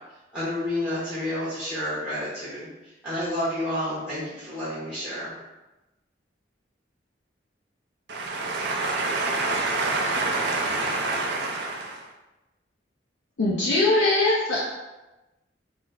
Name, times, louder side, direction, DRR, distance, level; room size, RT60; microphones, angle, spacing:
voice 1, 0.3-2.7 3.0-5.3, left 1 dB, 5° right, -12 dB, 0.7 m, -30 dB
voice 2, 8.1-12.0, right 3 dB, 60° right, 0 dB, 0.5 m, -27 dB
voice 3, 13.4-14.7, left 2 dB, 85° left, -7 dB, 0.5 m, -21 dB
2.5 x 2.1 x 3.9 m, 1.0 s
head